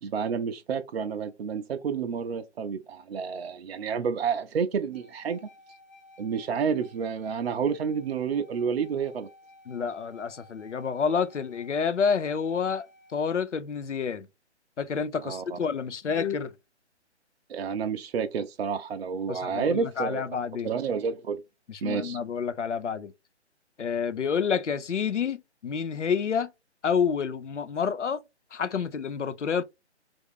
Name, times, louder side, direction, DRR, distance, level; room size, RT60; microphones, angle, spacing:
voice 1, 0.0-5.5 6.2-9.3 15.2-15.6 17.5-20.2 20.6-21.4 21.8-22.2, right 6 dB, 60° right, 0.5 m, -30 dB
sound 1, 4.9-13.2, left 2 dB, ahead, 0.7 m, -55 dB
voice 2, 9.7-14.3 14.8-16.5 19.3-20.7 21.7-23.1 23.8-26.5 26.8-28.2 28.5-29.6, left 6 dB, 90° left, 0.6 m, -29 dB
3.4 x 2.5 x 3.4 m
figure-of-eight pair, 140°, 35 cm